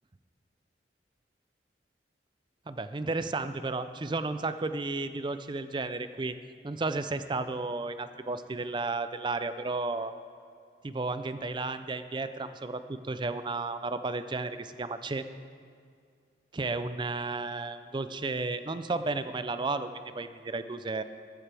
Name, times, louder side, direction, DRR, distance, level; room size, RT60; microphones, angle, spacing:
voice 1, 2.7-6.3 6.6-10.1 10.8-15.2 16.5-21.0, right 3 dB, 25° right, 11 dB, 0.4 m, -33 dB
14.0 x 13.5 x 3.4 m, 2.2 s
head